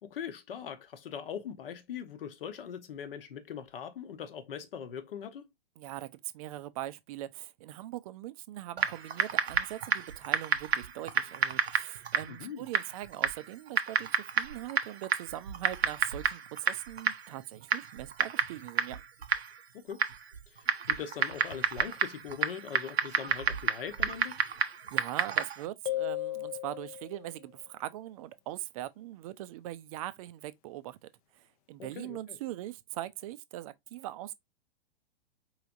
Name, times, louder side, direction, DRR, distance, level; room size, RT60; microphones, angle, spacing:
voice 1, 0.0-5.5 12.3-12.7 19.7-20.1 20.5-24.4 31.8-32.4, left 8 dB, 60° left, 1.0 m, -41 dB
voice 2, 5.8-14.1 14.4-19.0 24.6-31.1 31.4-34.3, right 14 dB, 35° right, 0.4 m, -41 dB
Typing, 8.8-25.7, right 6 dB, 85° right, 0.7 m, -31 dB
sound 1, 25.9-27.3, left 16 dB, 35° left, 0.5 m, -35 dB
4.6 x 3.2 x 2.5 m
figure-of-eight pair, 115°, 31 cm